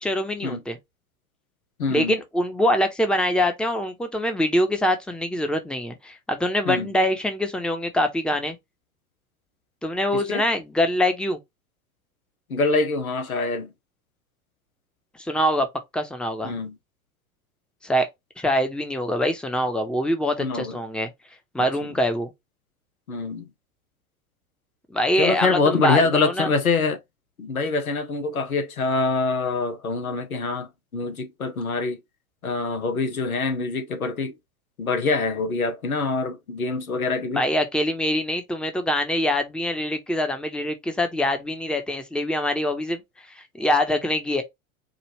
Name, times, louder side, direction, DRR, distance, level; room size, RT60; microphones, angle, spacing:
voice 1, 0.0-0.8 1.9-8.6 9.8-11.4 15.2-15.7 15.9-16.6 17.8-18.1 18.4-21.1 21.5-22.3 24.9-26.5 37.3-43.0 43.3-44.4, left 1 dB, ahead, 0.8 m, -24 dB
voice 2, 1.8-2.2 6.7-6.9 10.1-10.4 12.5-13.7 16.4-16.8 20.4-20.8 21.6-21.7 23.1-23.5 25.2-27.0 27.4-30.7 30.9-32.0 32.4-34.3 34.8-37.4, left 3 dB, 85° left, 1.1 m, -25 dB
4.9 x 2.5 x 3.0 m
figure-of-eight pair, 85°, 42 cm